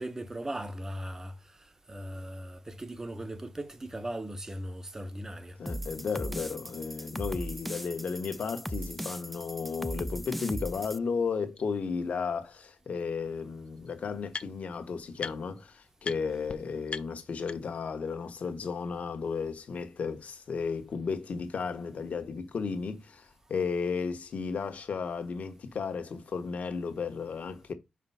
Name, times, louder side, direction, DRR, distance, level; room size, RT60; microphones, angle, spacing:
voice 1, 0.0-1.4 1.9-5.6, right 1 dB, 20° right, 1.0 m, -38 dB
voice 2, 5.6-27.7, left 5 dB, 65° left, 1.4 m, -34 dB
sound 1, 5.7-11.0, equal, ahead, 0.4 m, -38 dB
sound 2, 10.8-10.9 11.6-11.7 12.9-13.0 13.3-14.8 15.2-15.6 16.0-16.2 16.5-16.6 16.9-17.9, left 5 dB, 45° left, 0.7 m, -41 dB
5.2 x 4.9 x 5.7 m
cardioid pair, 95°, 3 cm